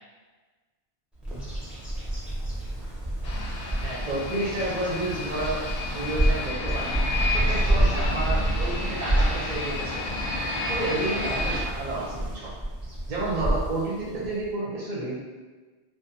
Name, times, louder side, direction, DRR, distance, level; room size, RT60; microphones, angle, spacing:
Bird vocalization bird call bird song, 1.2-14.5, right 1 dB, ahead, 0.4 m, -29 dB
sound 1, 3.2-11.6, left 2 dB, 65° left, 0.7 m, -32 dB
voice 1, 3.8-6.9 7.3-10.0 10.7-12.5 13.1-15.1, right 2 dB, 55° right, -5 dB, 0.6 m, -30 dB
2.5 x 2.2 x 2.6 m, 1.3 s
omnidirectional pair, 1.2 m